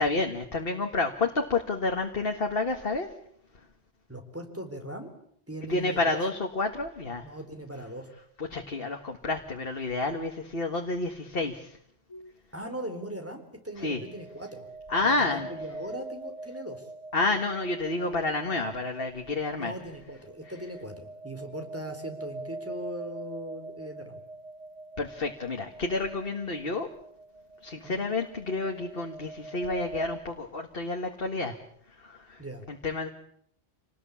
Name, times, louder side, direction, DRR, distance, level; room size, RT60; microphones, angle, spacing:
voice 1, 0.0-3.1 5.7-7.3 8.4-11.8 13.8-14.0 14.9-15.5 17.1-19.7 25.0-26.9 27.6-31.6 32.0-32.4 32.7-33.1, left 3 dB, 60° left, 3 dB, 2.0 m, -29 dB
voice 2, 4.1-5.1 5.5-6.2 7.2-8.1 12.5-14.7 15.0-16.9 19.6-24.2 27.8-28.0 32.4-32.7, right 1 dB, 10° right, 5 dB, 4.0 m, -39 dB
sound 1, 12.1-12.3 13.9-30.2, right 2 dB, 30° left, 1.6 m, -44 dB
28.0 x 19.5 x 8.6 m, 0.70 s
omnidirectional pair, 1.1 m